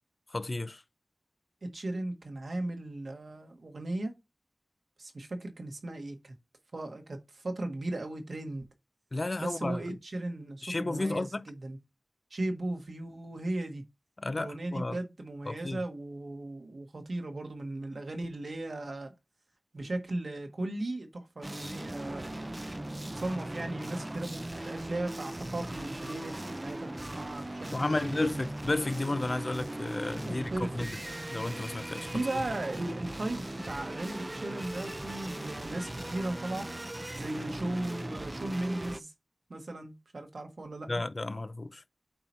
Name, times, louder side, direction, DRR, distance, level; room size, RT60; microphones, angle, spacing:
voice 1, 0.3-0.8 9.1-9.8 10.6-11.5 14.2-15.0 15.5-15.8 27.7-31.0 31.3-32.1 40.9-41.8, left 2 dB, 55° left, 0.5 m, -32 dB
voice 2, 1.7-4.1 5.0-6.3 6.7-8.6 9.4-11.8 12.3-13.8 14.4-19.1 19.7-22.4 23.0-28.4 30.2-30.7 32.1-36.6 37.1-39.1 39.5-40.9, right 2 dB, 80° right, 1.6 m, -37 dB
sound 1, 21.4-39.0, right 1 dB, 30° right, 0.5 m, -39 dB
8.7 x 3.0 x 5.5 m
wide cardioid pair, 40°, 0 cm